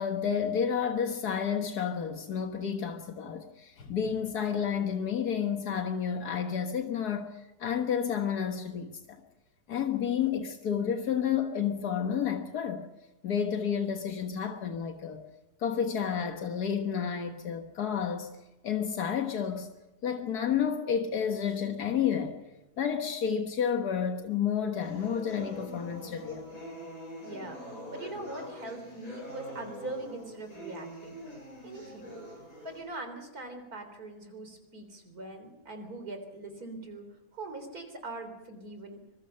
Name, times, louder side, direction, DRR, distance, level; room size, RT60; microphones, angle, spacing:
voice 1, 0.0-9.2 9.7-12.9 13.2-15.2 15.6-18.3 18.6-19.7 20.0-22.4 22.8-26.5, left 7 dB, 85° left, 1.9 m, -30 dB
sound 1, 24.8-32.8, equal, 60° left, 8.2 m, -44 dB
voice 2, 27.2-27.6 27.9-31.2 31.6-32.1 32.6-39.0, right 2 dB, 70° right, 4.1 m, -42 dB
25.5 x 21.5 x 5.7 m
omnidirectional pair, 1.6 m